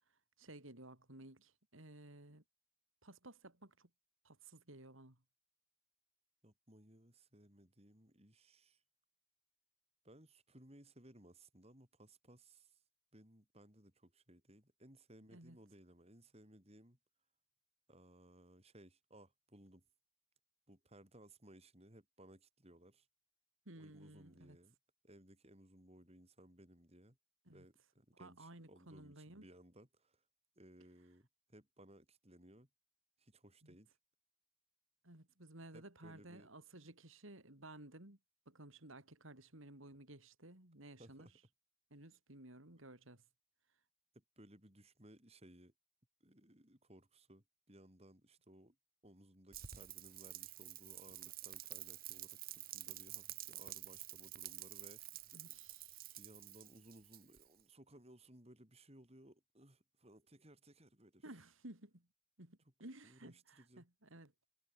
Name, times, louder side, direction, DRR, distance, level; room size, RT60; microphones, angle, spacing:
voice 1, 0.4-2.4 3.0-3.9 4.2-5.2 15.3-15.6 23.7-24.6 27.5-27.7 28.1-29.5 33.6-33.8 35.0-38.2 38.5-41.3 41.9-43.2 55.3-56.2 61.2-62.1 62.4-64.3, right 1 dB, 75° right, 3.9 m, -56 dB
voice 2, 6.4-8.8 10.0-12.8 13.1-17.0 17.9-19.8 20.7-23.1 23.7-24.8 25.0-27.2 27.5-30.2 30.6-32.7 33.2-33.9 35.7-36.5 41.0-41.3 44.1-45.7 46.2-48.8 49.0-55.3 56.2-61.4 63.0-63.9, right 1 dB, 30° right, 5.3 m, -62 dB
Rain, 49.5-57.6, right 14 dB, 45° right, 1.7 m, -50 dB
head